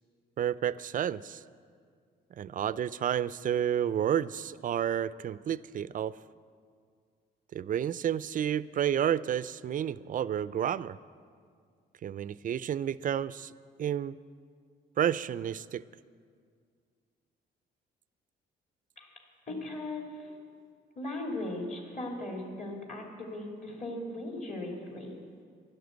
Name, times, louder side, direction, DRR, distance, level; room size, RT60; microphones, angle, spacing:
voice 1, 0.4-1.4 2.4-6.1 7.5-11.0 12.0-13.5 13.8-14.2 15.0-15.8, right 9 dB, 45° right, 19 dB, 0.4 m, -30 dB
voice 2, 19.5-20.4 21.0-25.2, left 1 dB, 40° left, 0 dB, 2.6 m, -38 dB
12.0 x 10.5 x 8.0 m, 2.1 s
cardioid pair, 90°, 20 cm